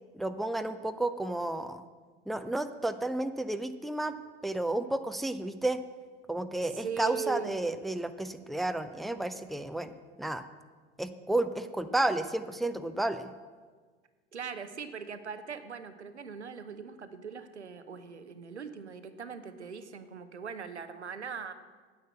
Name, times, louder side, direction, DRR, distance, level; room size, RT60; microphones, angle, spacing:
voice 1, 0.1-1.8 2.3-4.1 4.4-5.8 6.3-10.4 11.0-13.3, right 2 dB, ahead, 10 dB, 0.5 m, -32 dB
voice 2, 6.6-7.6 14.3-21.5, right 6 dB, 85° right, 10 dB, 0.7 m, -40 dB
9.3 x 7.8 x 7.8 m, 1.5 s
figure-of-eight pair, 65°, 33 cm